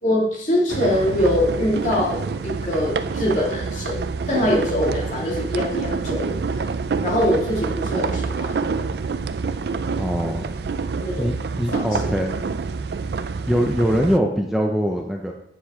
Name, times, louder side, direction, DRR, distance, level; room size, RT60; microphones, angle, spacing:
voice 1, 0.0-6.4 7.0-8.5 11.0-11.3 11.7-11.8, left 1 dB, 45° left, -3 dB, 2.4 m, -23 dB
sound 1, 0.7-14.2, right 4 dB, 65° right, 0.4 m, -27 dB
voice 2, 10.0-10.5 11.2-12.4 13.5-15.3, equal, ahead, 1 dB, 0.5 m, -22 dB
8.5 x 7.3 x 3.6 m, 0.78 s
head